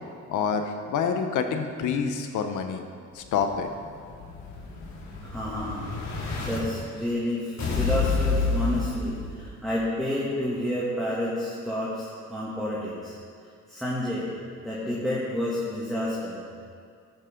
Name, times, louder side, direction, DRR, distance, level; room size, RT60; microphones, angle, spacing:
voice 1, 0.3-2.8 3.1-3.7, left 6 dB, 80° left, 6 dB, 1.1 m, -27 dB
Explosion, 3.2-6.6 7.6-9.6, left 4 dB, 65° left, 2.9 m, -29 dB
voice 2, 5.2-5.9 6.4-13.2 13.7-14.3 14.6-16.4, left 1 dB, ahead, -8 dB, 2.6 m, -30 dB
13.5 x 10.5 x 3.9 m, 2.3 s
cardioid pair, 90°, 30 cm